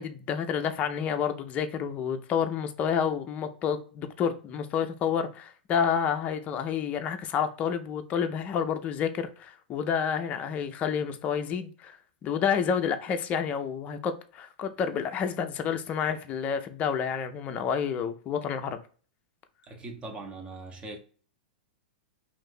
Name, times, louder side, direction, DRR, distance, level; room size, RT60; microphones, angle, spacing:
voice 1, 0.0-12.0 12.2-18.8, left 7 dB, 30° left, 0.4 m, -29 dB
voice 2, 19.7-21.0, right 2 dB, 25° right, 0.8 m, -40 dB
2.6 x 2.5 x 3.5 m
hypercardioid pair, 105°, 5 cm